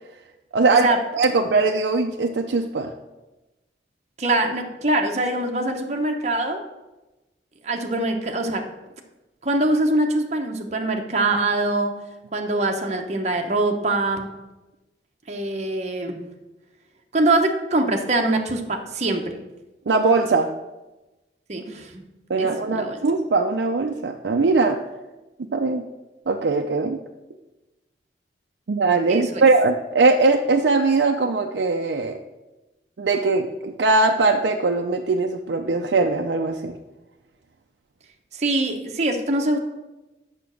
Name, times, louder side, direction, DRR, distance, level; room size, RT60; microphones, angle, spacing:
voice 1, 0.5-0.9 1.1-2.9 19.9-20.5 22.3-24.8 25.5-25.8 26.3-27.0 28.7-32.2 33.0-36.8, right 3 dB, 75° right, 3 dB, 0.5 m, -20 dB
voice 2, 4.2-6.6 7.6-8.6 9.4-11.9 12.3-14.3 15.3-16.2 17.1-19.2 21.5-22.0 22.4-23.0 29.1-29.4 38.3-39.6, right 2 dB, 40° right, 3 dB, 0.9 m, -23 dB
6.9 x 5.8 x 6.2 m, 1.1 s
head